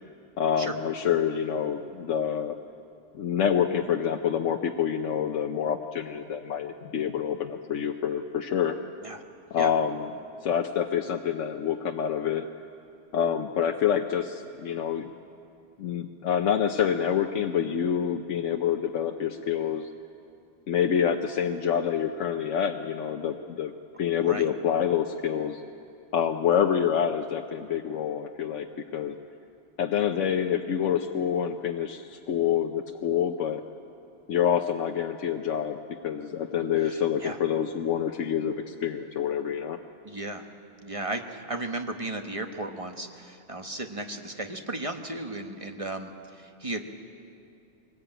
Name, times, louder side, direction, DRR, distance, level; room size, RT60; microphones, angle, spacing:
voice 1, 0.4-2.5 3.1-8.7 9.5-10.1 10.4-12.5 13.1-15.1 15.8-19.9 20.7-25.6 26.1-29.2 29.8-33.6 34.3-39.8, left 8 dB, 90° left, 4 dB, 1.1 m, -27 dB
voice 2, 36.8-37.4 40.0-40.4 40.8-46.8, right 2 dB, 30° right, 5 dB, 1.2 m, -35 dB
22.5 x 19.0 x 8.9 m, 2.5 s
omnidirectional pair, 1.2 m